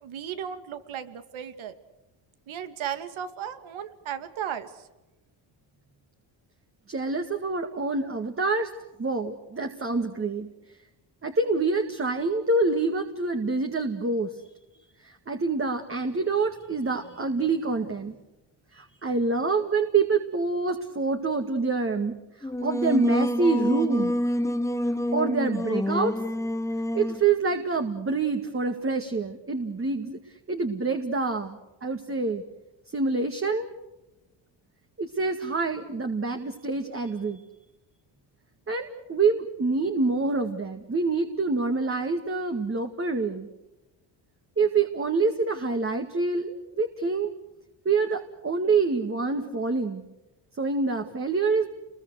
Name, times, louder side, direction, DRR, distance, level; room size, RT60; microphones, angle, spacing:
voice 1, 0.0-1.7 2.5-4.7, right 9 dB, 75° right, 10 dB, 2.5 m, -35 dB
voice 2, 6.9-8.7 9.0-10.5 11.2-14.4 15.0-18.2 18.7-24.1 25.1-26.1 27.0-30.2 30.5-32.4 32.9-33.7 35.0-37.4 38.7-43.5 44.6-47.3 47.9-50.0 50.6-51.7, right 3 dB, 25° right, 5 dB, 2.1 m, -26 dB
Singing, 22.4-27.3, left 1 dB, 5° left, 1.1 m, -27 dB
30.0 x 22.5 x 6.5 m, 1.0 s
cardioid pair, 105°, 48 cm